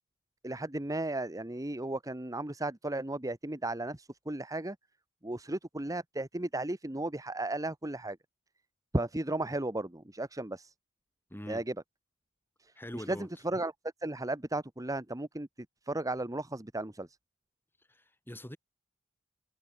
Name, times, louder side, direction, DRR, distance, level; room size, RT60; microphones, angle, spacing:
voice 1, 0.4-4.8 5.2-8.2 8.9-10.7 11.5-11.7 12.9-13.2 13.4-13.7 14.0-15.5 15.9-17.1, right 2 dB, 15° right, 1.2 m, -34 dB
voice 2, 11.3-11.7 12.8-13.3 17.9-18.6, equal, 10° left, 3.8 m, -43 dB
head